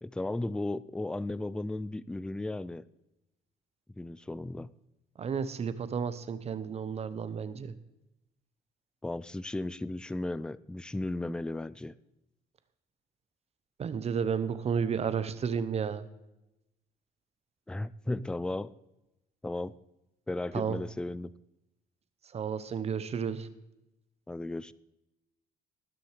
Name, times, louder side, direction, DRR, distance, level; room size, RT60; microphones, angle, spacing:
voice 1, 0.0-2.8 4.0-4.7 9.0-11.9 17.7-18.7 19.4-19.7 20.3-21.3 24.3-24.7, left 2 dB, 5° left, 18 dB, 0.4 m, -35 dB
voice 2, 5.2-7.7 13.8-16.1 20.5-20.8 22.3-23.5, right 6 dB, 40° right, 14 dB, 0.9 m, -32 dB
18.5 x 6.3 x 4.9 m, 0.92 s
cardioid pair, 110°, 17 cm